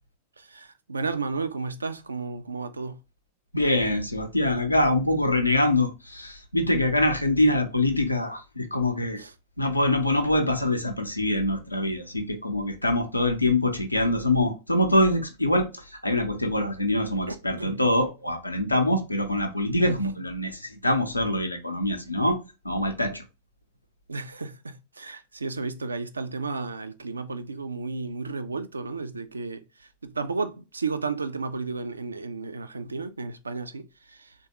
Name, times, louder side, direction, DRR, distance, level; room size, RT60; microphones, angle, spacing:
voice 1, 0.4-3.0 9.2-9.3 17.3-17.8 19.8-20.0 24.1-34.3, right 4 dB, 75° right, 0.3 m, -33 dB
voice 2, 3.5-9.2 9.6-22.4 22.6-23.2, left 1 dB, 85° left, 0.5 m, -24 dB
3.4 x 2.2 x 2.9 m
figure-of-eight pair, 90°, 0 cm